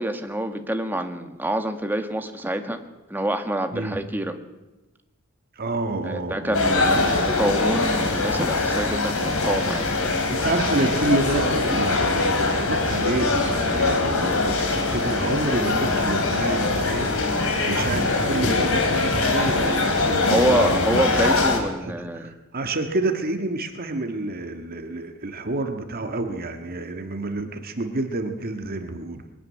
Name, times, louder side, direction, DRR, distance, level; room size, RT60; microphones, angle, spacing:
voice 1, 0.0-2.8 3.1-4.4 6.0-9.9 20.3-22.3, right 1 dB, 10° right, 6 dB, 1.6 m, -26 dB
voice 2, 5.5-7.1 8.7-8.8 10.3-17.1 17.6-20.8 21.3-29.3, right 2 dB, 45° right, 5 dB, 1.7 m, -29 dB
sound 1, 6.5-21.6, left 3 dB, 70° left, 3.9 m, -22 dB
22.0 x 12.5 x 9.7 m, 1.1 s
head